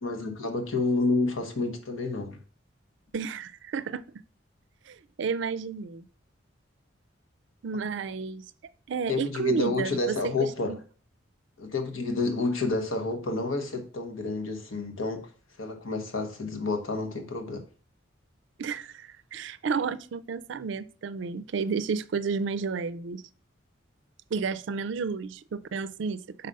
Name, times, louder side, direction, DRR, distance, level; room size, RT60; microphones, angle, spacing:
voice 1, 0.0-2.4 9.1-10.7 11.6-15.3 15.6-17.6, left 3 dB, 90° left, 1.1 m, -29 dB
voice 2, 3.1-4.0 4.9-6.1 7.6-8.4 8.9-10.8 18.6-23.2 24.3-26.5, right 5 dB, 70° right, 0.4 m, -31 dB
5.2 x 4.1 x 5.4 m
head